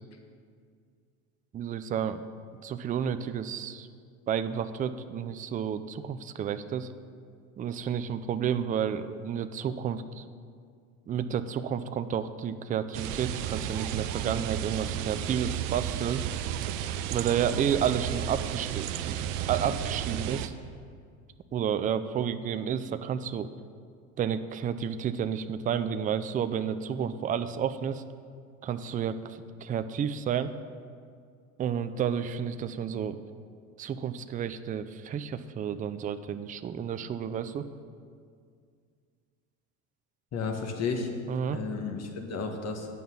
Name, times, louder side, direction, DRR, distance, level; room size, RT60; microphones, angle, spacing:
voice 1, 1.5-2.2 2.6-3.9 4.3-6.9 7.6-10.2 11.1-16.2 17.1-20.5 21.5-23.5 24.2-28.0 28.6-30.5 31.6-33.2 33.8-37.7 41.3-41.6, right 8 dB, 20° right, 10 dB, 0.4 m, -31 dB
sound 1, 12.9-20.5, right 10 dB, 75° right, 0.6 m, -33 dB
voice 2, 40.3-41.1 41.5-42.9, left 5 dB, 40° left, 3 dB, 1.5 m, -32 dB
9.2 x 5.5 x 7.2 m, 2.2 s
hypercardioid pair, 90°, 39 cm